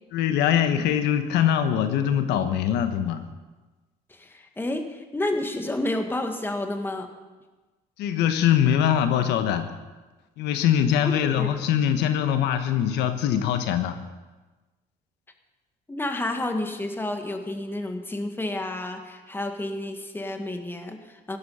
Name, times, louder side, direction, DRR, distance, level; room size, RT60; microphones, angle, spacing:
voice 1, 0.1-3.3 8.0-9.7 10.4-14.0, left 9 dB, 85° left, 8 dB, 1.2 m, -23 dB
voice 2, 4.1-7.1 11.0-11.6 15.9-21.4, left 1 dB, 10° left, 5 dB, 1.8 m, -30 dB
16.5 x 12.5 x 5.7 m, 1.2 s
cardioid pair, 110°, 17 cm